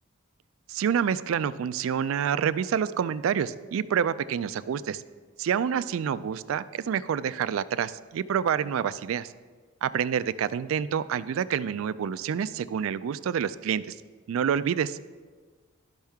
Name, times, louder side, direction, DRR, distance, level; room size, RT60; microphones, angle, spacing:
voice 1, 0.7-5.0 5.4-9.3 9.8-14.0 14.3-15.0, right 8 dB, 70° right, 15 dB, 0.3 m, -27 dB
12.0 x 5.5 x 3.5 m, 1.5 s
head